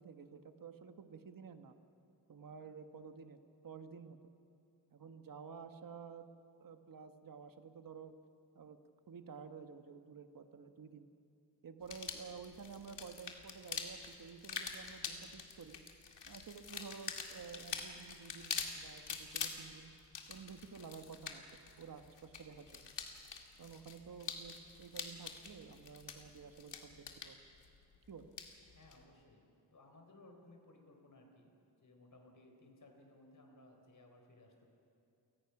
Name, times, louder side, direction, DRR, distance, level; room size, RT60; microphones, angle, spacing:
voice 1, 0.0-1.7 2.3-4.2 4.9-6.3 6.6-8.1 8.5-8.8 9.1-11.1 11.6-15.8 16.2-19.9 20.3-22.9 23.6-27.4 28.1-28.3, right 6 dB, 50° right, 8 dB, 1.3 m, -52 dB
sound 1, 11.8-29.0, left 6 dB, 85° left, 2.2 m, -46 dB
voice 2, 28.7-31.5 31.8-34.7, left 2 dB, 45° left, 3 dB, 4.1 m, -61 dB
29.0 x 18.5 x 6.0 m, 2.6 s
wide cardioid pair, 130°, 42 cm